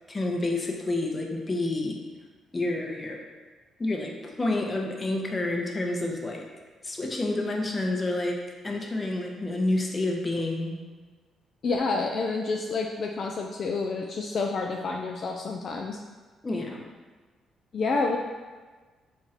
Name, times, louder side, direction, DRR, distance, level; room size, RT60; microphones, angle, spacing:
voice 1, 0.1-2.0 2.5-3.2 3.8-6.5 6.8-8.4 8.6-10.8 16.4-16.8, left 2 dB, 25° left, 0 dB, 0.7 m, -29 dB
voice 2, 11.6-16.0 17.7-18.2, left 3 dB, 55° left, 1 dB, 0.3 m, -29 dB
4.5 x 2.6 x 4.1 m, 1.4 s
cardioid pair, 90°, 0 cm